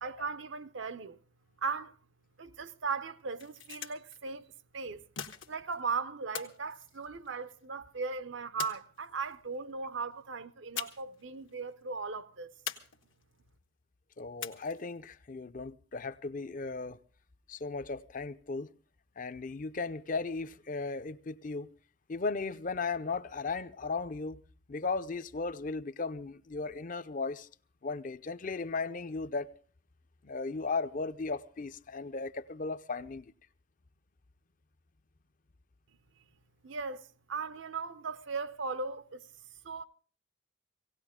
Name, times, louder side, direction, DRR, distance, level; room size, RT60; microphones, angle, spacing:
voice 1, 0.0-1.2 1.6-2.0 2.4-4.5 4.7-5.0 5.5-12.5 36.6-39.3 39.6-39.8, right 4 dB, 70° right, 0.7 m, -38 dB
sound 1, 3.3-4.2 5.2-5.8 6.3-7.6 8.6-9.4 10.8-11.2 11.5-11.6 12.7-13.4 14.4-15.0, left 8 dB, 75° left, 1.3 m, -42 dB
voice 2, 14.2-17.0 17.5-18.7 19.2-21.7 22.1-24.4 24.7-27.5 27.8-29.5 30.2-33.2, left 4 dB, 45° left, 0.6 m, -36 dB
18.0 x 17.5 x 3.6 m
head